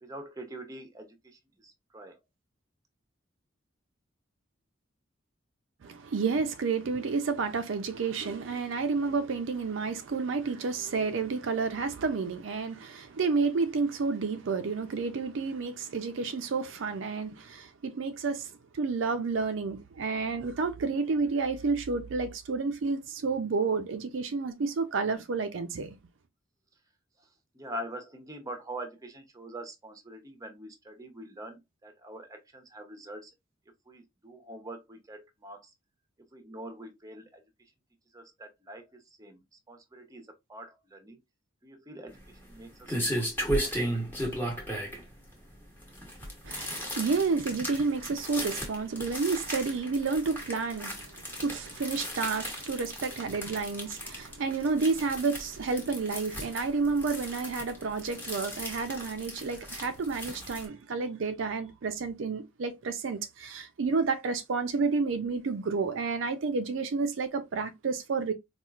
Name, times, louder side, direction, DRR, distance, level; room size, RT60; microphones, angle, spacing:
voice 1, 0.0-2.2 27.5-33.3 33.9-35.7 36.3-37.4 38.1-41.2 41.6-42.2 42.4-43.3 43.6-44.1, right 1 dB, 15° right, 0.6 m, -44 dB
voice 2, 5.8-26.0 46.4-68.3, right 4 dB, 70° right, 0.4 m, -30 dB
sound 1, 42.1-60.6, equal, 10° left, 0.9 m, -36 dB
4.3 x 2.3 x 2.3 m
head